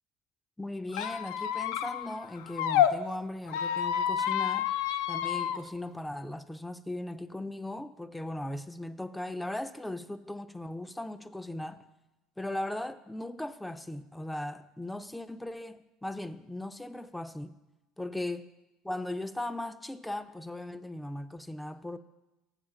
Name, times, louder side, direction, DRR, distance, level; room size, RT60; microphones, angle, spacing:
voice 1, 0.6-4.7 5.1-11.9 12.4-17.5 18.0-18.5 18.8-22.0, left 1 dB, 5° left, 0.4 m, -38 dB
Squeak, 0.9-2.9 3.5-5.6, left 10 dB, 75° left, 0.4 m, -29 dB
7.4 x 7.2 x 5.8 m
hypercardioid pair, 70°, 0 cm